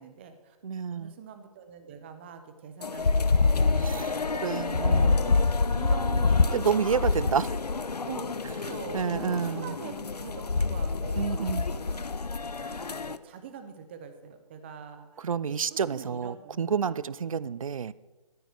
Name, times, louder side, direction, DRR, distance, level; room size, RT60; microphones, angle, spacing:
voice 1, 0.0-0.6 0.9-4.0 4.3-6.6 7.2-7.5 8.0-12.1 12.6-15.1 15.5-17.1, right 7 dB, 15° right, 8 dB, 0.7 m, -44 dB
voice 2, 0.6-1.1 3.8-5.2 6.5-7.5 8.9-9.8 11.2-11.6 15.2-17.9, right 7 dB, 60° right, 19 dB, 0.4 m, -29 dB
sound 1, 2.8-13.2, left 4 dB, 80° left, 0.6 m, -27 dB
13.5 x 10.0 x 3.2 m, 1.2 s
figure-of-eight pair, 145°, 20 cm